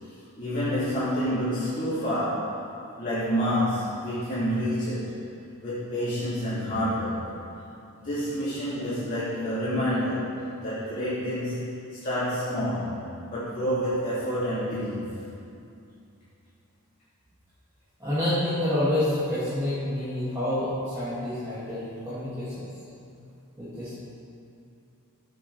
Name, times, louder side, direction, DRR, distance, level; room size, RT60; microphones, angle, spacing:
voice 1, 0.4-2.6 3.0-5.1 5.6-7.3 7.9-11.6 11.9-15.0, equal, 35° left, -13 dB, 2.6 m, -28 dB
voice 2, 18.0-22.6 23.6-24.0, left 1 dB, 15° right, -14 dB, 2.3 m, -28 dB
14.5 x 7.4 x 3.4 m, 2.6 s
head